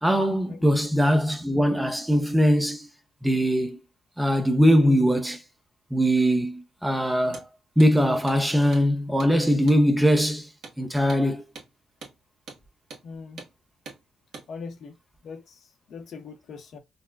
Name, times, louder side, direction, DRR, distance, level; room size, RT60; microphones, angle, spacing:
voice 1, 0.0-2.9 3.2-3.8 4.2-5.4 5.9-7.4 7.8-10.5 10.8-11.4, equal, 5° right, 0.6 m, -21 dB
Hammer, 7.2-7.5 7.8-7.9 8.3-8.4 8.7-8.9 9.2-9.3 9.7-9.8 10.2-10.3 10.6-10.8 11.1-11.2 11.6-11.7 12.0-12.2 12.5-12.6 12.9-13.1 13.4-13.5 13.9-14.0 14.3-14.5, right 4 dB, 65° right, 1.4 m, -43 dB
voice 2, 13.0-13.4 14.5-14.9 15.2-16.8, left 5 dB, 60° left, 0.8 m, -41 dB
4.1 x 2.2 x 2.3 m
cardioid pair, 90°, 0 cm